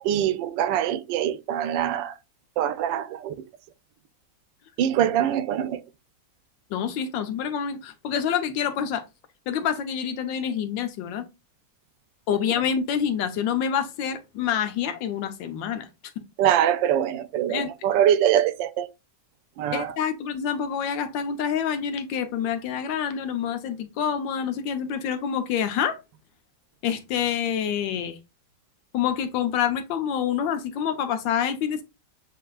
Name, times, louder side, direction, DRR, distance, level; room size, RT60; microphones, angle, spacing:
voice 1, 0.0-2.2 2.6-3.3 4.8-5.8 16.4-18.9 19.6-19.9, right 10 dB, 85° right, 1.3 m, -23 dB
voice 2, 6.7-9.0 9.5-11.3 12.3-15.9 16.2-16.3 17.5-17.7 19.7-26.0 26.8-28.2 28.9-31.8, left 8 dB, 90° left, 1.4 m, -27 dB
7.9 x 2.8 x 2.4 m
omnidirectional pair, 2.0 m